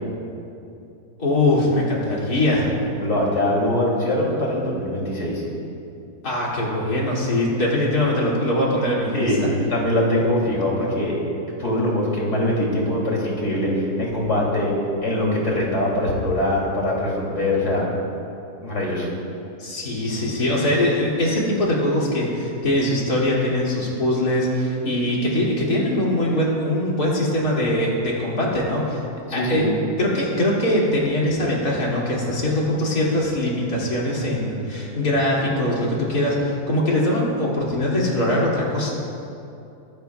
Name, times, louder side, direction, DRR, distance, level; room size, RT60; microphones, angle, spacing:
voice 1, 1.2-2.7 6.2-9.3 19.6-29.0 29.3-29.7 30.0-38.9, left 1 dB, 70° left, -5 dB, 3.1 m, -22 dB
voice 2, 2.9-5.4 9.1-11.2 11.6-14.7 15.0-17.9 18.6-19.1 29.3-29.7, left 1 dB, 50° left, -4 dB, 3.2 m, -22 dB
24.0 x 12.0 x 2.3 m, 2.7 s
omnidirectional pair, 1.7 m